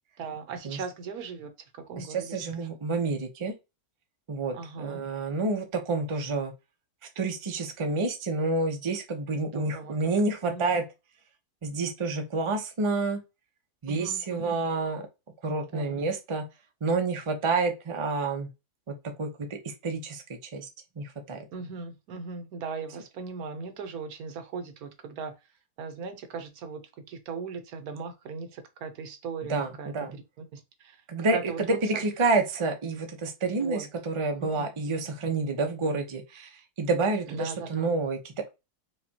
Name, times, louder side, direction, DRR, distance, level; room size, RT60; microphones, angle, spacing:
voice 1, 0.2-2.7 4.5-5.0 9.5-9.9 10.4-10.7 13.9-14.6 15.7-16.0 21.5-25.3 25.8-26.8 27.1-30.2 30.5-31.0 31.3-32.0 33.5-33.9 34.4-35.1 37.3-37.9, right 5 dB, 70° right, 1.2 m, -39 dB
voice 2, 2.0-3.5 4.3-6.5 7.2-10.8 11.6-13.2 13.8-15.0 15.4-16.4 16.8-18.5 18.9-20.7 21.0-21.5 29.5-30.1 31.1-38.5, right 3 dB, 45° right, 0.3 m, -29 dB
4.8 x 2.3 x 2.8 m
omnidirectional pair, 1.7 m